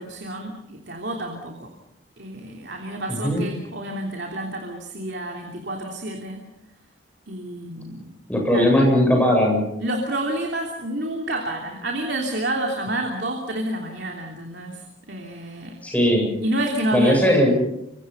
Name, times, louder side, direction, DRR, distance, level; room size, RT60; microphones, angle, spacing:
voice 1, 0.0-1.7 2.2-6.4 7.3-8.1 8.5-8.7 9.8-14.8 15.1-15.7 16.1-17.2, right 1 dB, 60° right, 1 dB, 3.2 m, -29 dB
voice 2, 3.1-3.4 8.3-9.6 15.8-16.2 16.9-17.5, equal, 5° left, 0 dB, 7.9 m, -18 dB
27.0 x 25.5 x 5.5 m, 0.82 s
head